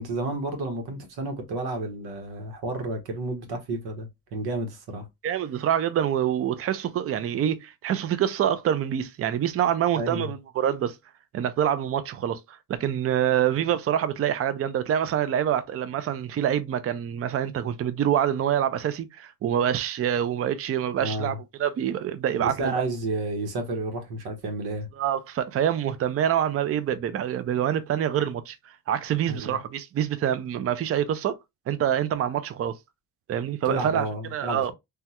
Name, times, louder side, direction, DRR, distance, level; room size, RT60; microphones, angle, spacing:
voice 1, 0.0-5.1 10.0-10.3 21.0-21.4 22.4-24.9 29.3-29.6 33.7-34.7, right 2 dB, 90° right, 1.1 m, -31 dB
voice 2, 5.2-11.0 11.3-22.8 25.0-31.4 31.7-32.8 33.3-34.1 34.3-34.7, right 10 dB, 40° right, 0.4 m, -26 dB
3.5 x 2.2 x 2.8 m
cardioid pair, 120°, 37 cm